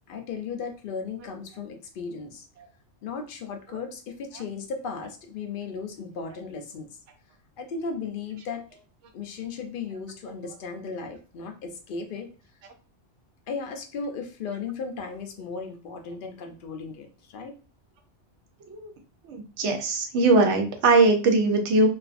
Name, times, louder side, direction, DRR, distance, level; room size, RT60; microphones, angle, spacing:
voice 1, 0.1-2.5 3.0-6.9 7.6-8.6 9.1-12.3 13.5-17.5, left 5 dB, 60° left, 5 dB, 0.6 m, -36 dB
voice 2, 19.2-21.9, right 3 dB, 80° right, 4 dB, 0.9 m, -21 dB
2.5 x 2.4 x 2.4 m, 0.35 s
omnidirectional pair, 1.2 m